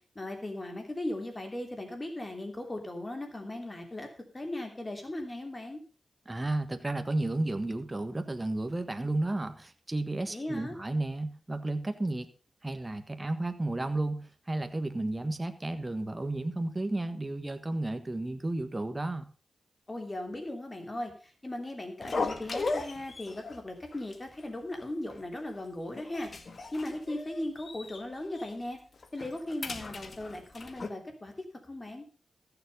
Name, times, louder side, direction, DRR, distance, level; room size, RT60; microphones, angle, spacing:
voice 1, 0.1-4.1 4.3-5.8 10.3-10.7 19.9-26.3 26.7-28.8 29.1-32.0, left 1 dB, 30° left, 4 dB, 3.1 m, -38 dB
voice 2, 6.2-12.3 12.6-19.3, right 2 dB, 25° right, 8 dB, 1.4 m, -32 dB
sound 1, 22.0-23.6 23.9-24.1 24.4-24.5 25.1-25.6 25.9-28.0 28.3-28.5 29.0-30.9, left 3 dB, 55° left, 1.6 m, -37 dB
15.0 x 7.1 x 5.4 m, 0.37 s
cardioid pair, 60°, 0 cm